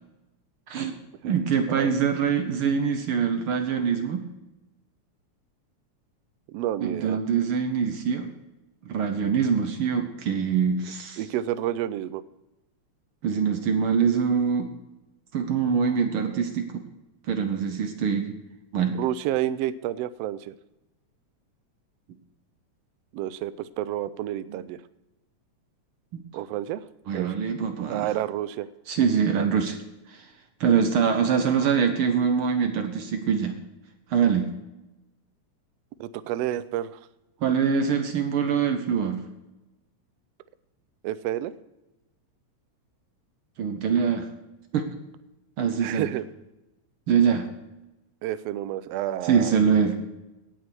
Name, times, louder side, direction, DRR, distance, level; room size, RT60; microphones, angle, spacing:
voice 1, 1.2-4.2 6.8-8.3 8.9-11.2 13.2-14.7 15.3-16.8 17.3-18.3 18.7-19.0 26.1-26.2 27.1-28.1 28.9-29.8 30.6-33.6 34.1-34.5 37.4-39.2 43.6-44.3 44.7-44.9 45.6-46.1 47.1-47.5 49.2-49.9, right 6 dB, 65° right, 6 dB, 1.4 m, -24 dB
voice 2, 6.5-7.2 11.2-12.2 18.9-20.5 23.1-24.8 26.3-26.8 27.1-27.3 27.9-28.7 36.0-37.0 41.0-41.5 45.8-46.2 48.2-49.6, right 12 dB, 90° right, 15 dB, 1.4 m, -30 dB
17.5 x 6.5 x 6.1 m, 1.0 s
omnidirectional pair, 3.4 m